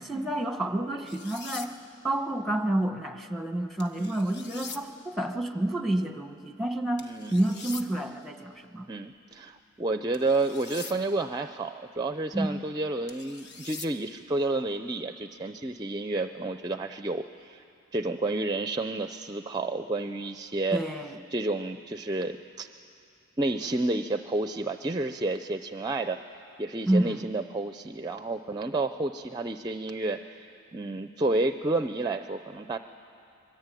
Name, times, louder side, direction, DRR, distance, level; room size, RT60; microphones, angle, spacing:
voice 1, 0.0-1.7 2.0-8.9 12.3-12.6 20.7-21.2 26.9-27.3, right 1 dB, ahead, 6 dB, 1.1 m, -29 dB
sound 1, 1.1-1.7 3.8-4.8 7.0-7.8 10.1-11.0 13.1-13.9, left 4 dB, 55° left, 1.3 m, -43 dB
voice 2, 7.0-7.3 8.9-17.6 17.9-20.8 21.3-22.7 23.4-26.2 26.6-30.5 30.7-32.8, right 2 dB, 20° right, 8 dB, 0.5 m, -30 dB
25.0 x 22.0 x 9.1 m, 2.7 s
head